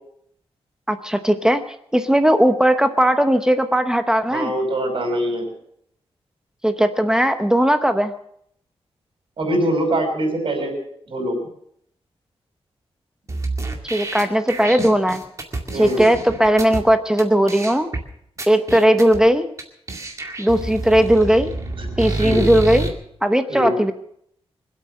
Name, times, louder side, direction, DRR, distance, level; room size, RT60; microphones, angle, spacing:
voice 1, 0.9-1.6 1.9-4.5 6.6-8.1 13.9-15.2 15.7-17.9 18.5-19.5 20.4-21.5 22.0-23.9, right 1 dB, 5° right, 8 dB, 0.8 m, -17 dB
voice 2, 4.3-5.5 9.4-10.7 11.1-11.4 15.7-16.1 22.1-22.5 23.5-23.7, right 1 dB, 60° right, 2 dB, 5.7 m, -23 dB
sound 1, 13.3-16.8 17.2-17.3 17.5-18.0 18.4-19.2 19.6-19.7 19.9-22.9, right 2 dB, 30° right, 2.1 m, -28 dB
25.0 x 8.5 x 6.5 m, 0.70 s
wide cardioid pair, 175°, 10 cm